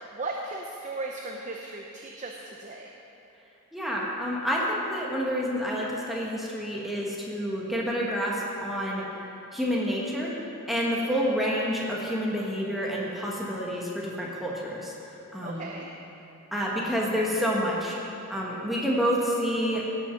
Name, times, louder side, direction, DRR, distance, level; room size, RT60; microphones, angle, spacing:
voice 1, 0.0-2.9 11.0-11.2 15.4-15.9, right 2 dB, 35° right, 0 dB, 0.7 m, -37 dB
voice 2, 3.7-9.0 9.5-10.3 10.7-14.9 15.3-15.7 16.5-18.0 18.3-19.9, equal, ahead, -5 dB, 1.4 m, -28 dB
17.5 x 6.3 x 5.8 m, 2.9 s
head